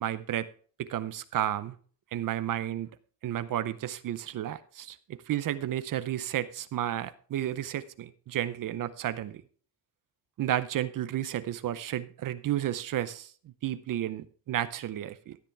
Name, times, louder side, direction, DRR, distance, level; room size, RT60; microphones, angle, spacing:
voice 1, 0.0-0.5 0.8-1.7 2.1-2.9 3.2-9.4 10.4-13.3 13.6-15.4, right 12 dB, 55° right, 13 dB, 0.7 m, -32 dB
13.5 x 9.5 x 3.4 m, 0.43 s
cardioid pair, 125°, 38 cm